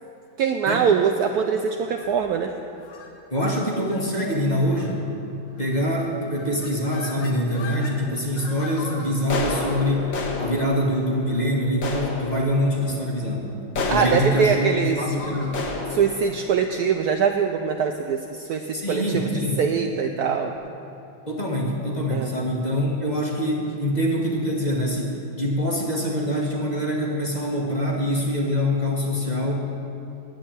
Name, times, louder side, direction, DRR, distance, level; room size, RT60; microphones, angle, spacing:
voice 1, 0.4-2.5 13.9-15.0 15.9-19.3 19.6-20.5 22.1-22.3, right 7 dB, 85° right, 5 dB, 0.8 m, -23 dB
sound 1, 1.9-2.3 2.8-3.1 3.8-4.0 4.3-4.4 4.7-5.1 5.7-6.0 6.3-8.0 8.4-17.5, left 3 dB, 65° left, 2.0 m, -32 dB
voice 2, 3.3-5.0 5.6-13.6 13.9-15.6 18.7-19.6 21.3-29.5, equal, 25° left, -2 dB, 1.3 m, -24 dB
8.9 x 8.5 x 8.8 m, 2.8 s
omnidirectional pair, 2.2 m